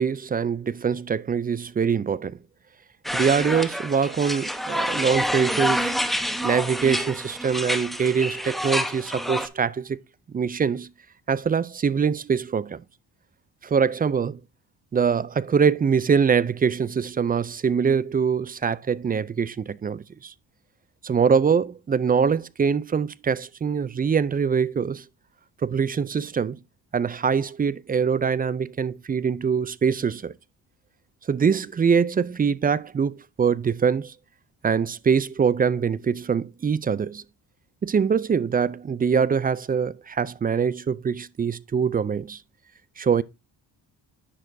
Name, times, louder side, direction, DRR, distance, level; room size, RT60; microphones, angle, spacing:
voice 1, 0.0-2.4 3.1-5.9 6.4-10.0 10.3-10.9 11.3-12.8 13.6-14.4 14.9-20.3 21.0-25.0 25.6-26.6 26.9-30.3 31.3-34.1 34.6-37.2 37.8-42.4 43.0-43.2, right 6 dB, 20° right, 0.3 m, -23 dB
sound 1, 3.0-9.5, equal, ahead, 0.9 m, -27 dB
10.0 x 6.2 x 2.6 m
supercardioid pair, 55°, 47 cm